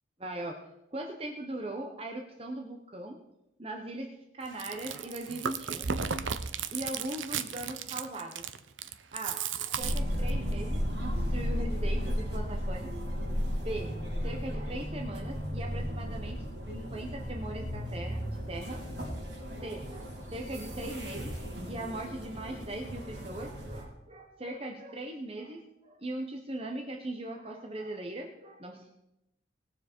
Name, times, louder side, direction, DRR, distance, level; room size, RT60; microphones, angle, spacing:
voice 1, 0.2-3.2 3.6-6.0 6.7-8.4 9.1-12.9 13.6-13.9 14.2-16.4 16.7-18.8 19.5-21.3 21.7-28.9, right 1 dB, 30° right, 1 dB, 1.1 m, -40 dB
Chewing mastication, 4.5-10.5, right 7 dB, 80° right, 0.7 m, -35 dB
sound 1, 9.8-23.8, equal, 60° right, 3.6 m, -34 dB
20.0 x 7.3 x 4.5 m, 0.87 s
head